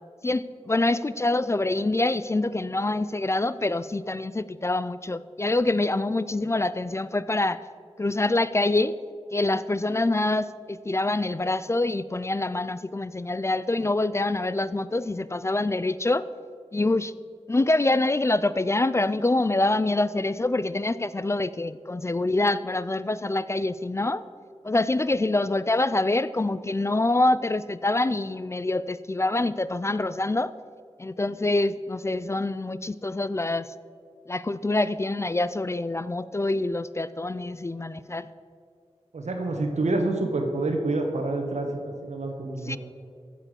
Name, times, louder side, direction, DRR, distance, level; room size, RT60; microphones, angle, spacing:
voice 1, 0.2-7.6 8.0-9.0 9.3-16.2 16.7-17.1 17.5-24.2 24.6-30.5 31.0-33.7 34.3-38.3 42.6-42.8, left 2 dB, 25° left, 15 dB, 0.3 m, -25 dB
voice 2, 39.1-42.8, right 2 dB, 85° right, 4 dB, 1.6 m, -27 dB
15.0 x 5.8 x 6.9 m, 2.2 s
wide cardioid pair, 80°, 11 cm